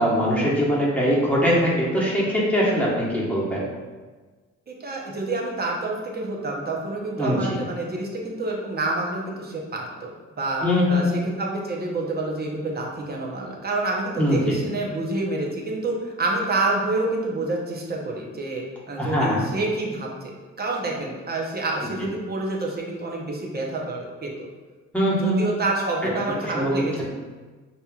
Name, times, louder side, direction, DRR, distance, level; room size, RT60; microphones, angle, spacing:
voice 1, 0.0-3.6 7.2-7.6 10.6-11.1 14.2-14.6 19.0-19.4 24.9-25.4 26.4-27.0, equal, 5° left, -6 dB, 1.2 m, -22 dB
voice 2, 4.7-10.1 10.4-24.5 25.1-27.0, right 2 dB, 30° right, -2 dB, 0.9 m, -28 dB
5.4 x 2.9 x 2.4 m, 1.4 s
cardioid pair, 90°, 30 cm